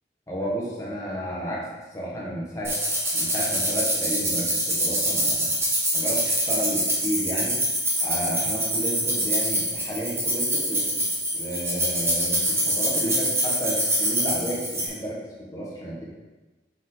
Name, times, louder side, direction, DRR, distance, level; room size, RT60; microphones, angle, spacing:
voice 1, 0.3-2.7 3.1-5.5 5.9-7.6 8.0-11.0 11.3-16.0, equal, 20° left, -6 dB, 1.5 m, -32 dB
sound 1, 2.6-14.9, right 1 dB, 15° right, 1.2 m, -25 dB
5.9 x 5.4 x 3.9 m, 1.2 s
head